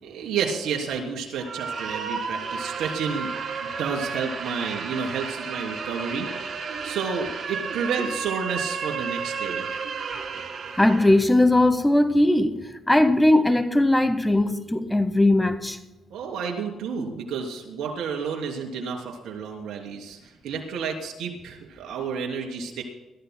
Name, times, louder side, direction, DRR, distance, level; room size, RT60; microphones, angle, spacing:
voice 1, 0.0-3.3 3.6-6.3 6.8-9.6 16.1-22.8, right 6 dB, 80° right, 3.2 m, -30 dB
sound 1, 1.4-11.2, right 5 dB, 55° right, 1.9 m, -32 dB
voice 2, 10.8-12.6 12.9-15.8, left 1 dB, 10° left, 0.9 m, -19 dB
22.5 x 14.5 x 2.2 m
cardioid pair, 90°, 0 cm